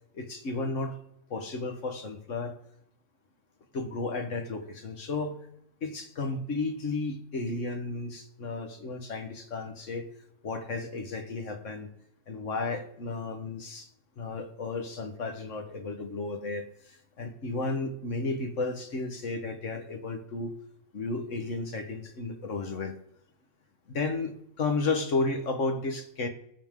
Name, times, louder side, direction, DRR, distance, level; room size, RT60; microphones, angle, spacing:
voice 1, 0.1-1.0 1.3-2.6 3.7-5.4 5.8-10.1 10.4-11.9 12.3-13.9 14.2-20.5 20.9-22.9 23.9-26.3, left 3 dB, 65° left, 6 dB, 1.7 m, -33 dB
19.0 x 7.5 x 3.7 m, 0.76 s
omnidirectional pair, 1.4 m